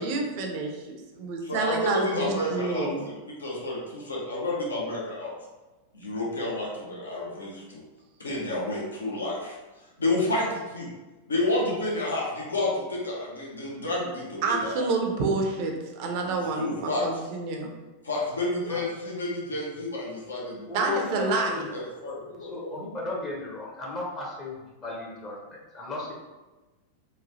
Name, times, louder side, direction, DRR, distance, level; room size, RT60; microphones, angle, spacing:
voice 1, 0.0-3.1 14.4-17.7 20.7-21.6, right 3 dB, 45° right, 2 dB, 0.5 m, -28 dB
voice 2, 1.4-2.9 3.4-5.3 5.9-7.8 8.2-9.5 10.0-10.9 11.3-14.8 16.6-17.0 18.0-21.0 21.7-22.7, left 2 dB, 75° left, -4 dB, 0.7 m, -30 dB
voice 3, 20.7-21.7 22.0-26.1, left 2 dB, 25° left, -3 dB, 0.7 m, -35 dB
3.0 x 2.3 x 2.6 m, 1.2 s
figure-of-eight pair, 90°, 0 cm